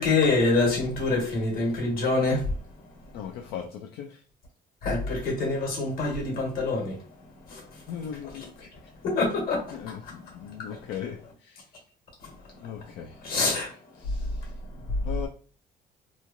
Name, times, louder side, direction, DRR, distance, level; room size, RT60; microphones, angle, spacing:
voice 1, 0.0-2.4 4.8-7.0 7.5-7.6 9.0-9.7 10.0-10.1 10.6-10.7 13.2-13.7, left 3 dB, 60° left, 1.3 m, -25 dB
voice 2, 3.1-4.2 7.9-8.7 9.7-11.6 12.6-13.7 14.0-14.4 15.0-15.3, left 9 dB, 85° left, 0.4 m, -38 dB
3.1 x 2.3 x 2.5 m
cardioid pair, 110°, 17 cm